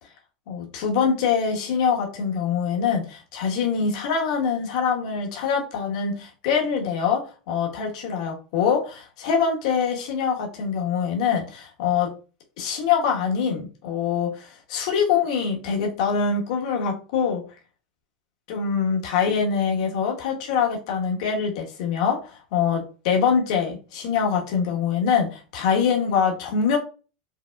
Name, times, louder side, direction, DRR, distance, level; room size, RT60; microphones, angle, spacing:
voice 1, 0.5-12.1 12.6-17.4 18.5-26.8, left 6 dB, 70° left, 0 dB, 1.2 m, -24 dB
4.8 x 2.1 x 2.3 m, 0.35 s
supercardioid pair, 135°, 4 cm